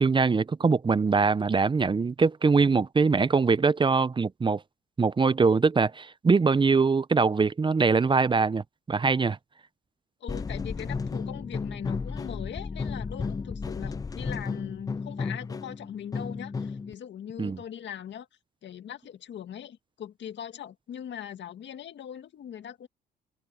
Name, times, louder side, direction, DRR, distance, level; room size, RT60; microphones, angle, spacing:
voice 1, 0.0-4.6 5.0-9.4 17.4-17.6, right 4 dB, 25° right, 0.6 m, -23 dB
voice 2, 10.2-18.3 18.6-22.9, left 9 dB, 65° left, 2.0 m, -41 dB
sound 1, 10.3-16.9, left 4 dB, 20° left, 0.4 m, -33 dB
cardioid pair, 90°, 20 cm